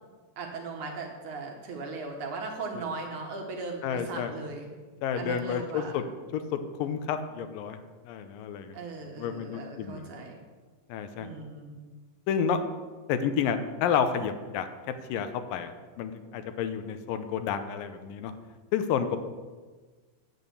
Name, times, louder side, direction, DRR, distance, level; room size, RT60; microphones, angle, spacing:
voice 1, 0.4-4.7 5.1-5.9 8.7-10.4 11.2-11.7, right 3 dB, 65° right, 1 dB, 2.5 m, -38 dB
voice 2, 3.8-4.3 5.0-6.0 6.3-7.8 8.1-8.7 9.0-10.1 10.9-11.3 12.3-12.6 13.1-14.7 15.1-18.3 18.7-19.2, left 7 dB, 80° left, 9 dB, 2.4 m, -30 dB
9.2 x 8.4 x 7.0 m, 1.4 s
omnidirectional pair, 4.1 m